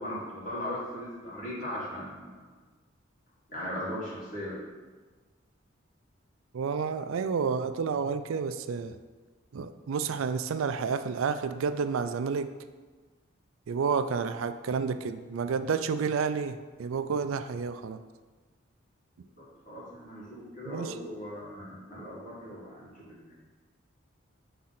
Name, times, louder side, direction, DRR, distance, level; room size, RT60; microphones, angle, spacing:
voice 1, 0.0-2.4 3.5-4.6 19.2-23.2, left 1 dB, 40° left, -7 dB, 2.0 m, -38 dB
voice 2, 6.5-9.0 9.5-12.5 13.7-18.0 20.7-20.9, right 5 dB, 80° right, 11 dB, 0.4 m, -30 dB
5.7 x 3.7 x 5.9 m, 1.4 s
head